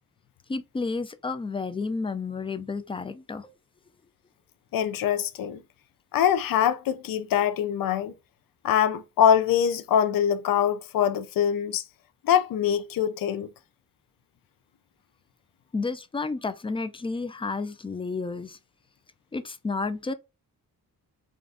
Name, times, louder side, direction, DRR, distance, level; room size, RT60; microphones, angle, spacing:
voice 1, 0.5-3.5 15.7-18.6 19.3-20.1, left 4 dB, 15° left, 0.3 m, -31 dB
voice 2, 4.7-5.6 6.1-8.1 8.6-11.8 12.2-13.5, left 9 dB, 70° left, 0.5 m, -23 dB
3.8 x 2.4 x 3.3 m
wide cardioid pair, 135°, 36 cm